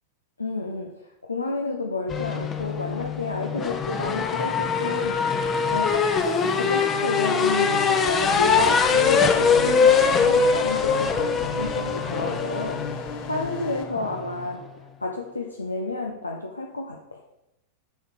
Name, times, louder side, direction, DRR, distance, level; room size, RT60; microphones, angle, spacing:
voice 1, 0.4-5.4 5.7-12.8 13.3-14.6 15.0-17.2, left 3 dB, 80° left, 1 dB, 0.9 m, -30 dB
sound 1, 2.1-14.6, left 5 dB, 25° left, 0.9 m, -23 dB
sound 2, 6.2-13.8, left 6 dB, 45° left, 1.3 m, -36 dB
9.2 x 5.5 x 6.4 m, 0.89 s
figure-of-eight pair, 90°, 0 cm